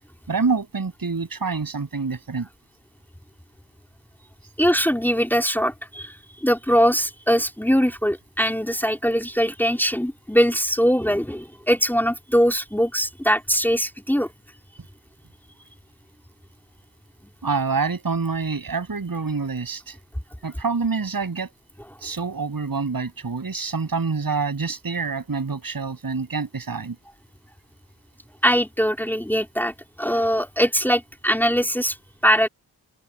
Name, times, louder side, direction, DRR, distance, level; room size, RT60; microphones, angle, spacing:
voice 1, 0.3-2.5 17.4-19.9 20.4-21.5 22.0-27.0, right 4 dB, 55° right, 7.9 m, -26 dB
voice 2, 4.6-14.3 28.4-32.0 32.2-32.5, equal, 5° left, 3.6 m, -21 dB
wide cardioid pair, 115°, 40 cm